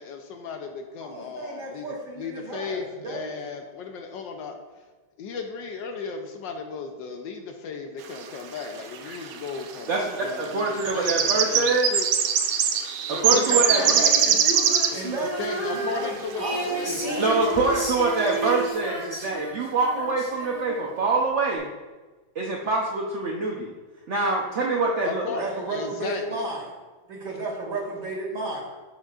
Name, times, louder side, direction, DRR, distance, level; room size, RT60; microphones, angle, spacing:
voice 1, 0.0-4.8 5.2-12.1 13.0-14.1 14.9-17.9 18.4-18.5 25.0-26.5, left 5 dB, 70° left, 5 dB, 1.3 m, -36 dB
voice 2, 1.0-3.3 13.3-17.2 25.4-26.6 27.1-28.6, right 2 dB, 40° right, -4 dB, 2.6 m, -33 dB
sound 1, 8.6-8.7 8.9-9.6 10.4-15.1 16.0-16.1 16.6-16.7 17.1-17.4 17.8-17.9 18.2-18.4, right 8 dB, 85° right, 1.5 m, -22 dB
voice 3, 9.9-11.9 13.2-13.8 17.2-21.7 22.4-23.7 24.1-25.4, right 3 dB, 60° right, -2 dB, 0.7 m, -25 dB
Female singing, 13.5-21.0, right 1 dB, 10° left, 2.6 m, -32 dB
12.0 x 6.4 x 2.4 m, 1.3 s
omnidirectional pair, 2.2 m